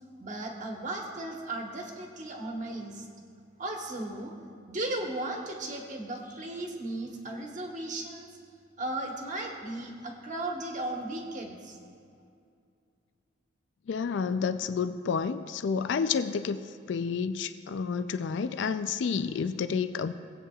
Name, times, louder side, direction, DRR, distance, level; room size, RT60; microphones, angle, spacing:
voice 1, 0.2-3.1 3.6-4.3 4.7-8.3 8.8-11.8, right 2 dB, 45° right, 1 dB, 1.2 m, -36 dB
voice 2, 13.9-16.6 16.9-20.1, left 6 dB, 65° left, 11 dB, 0.3 m, -30 dB
19.0 x 8.3 x 2.4 m, 2.3 s
head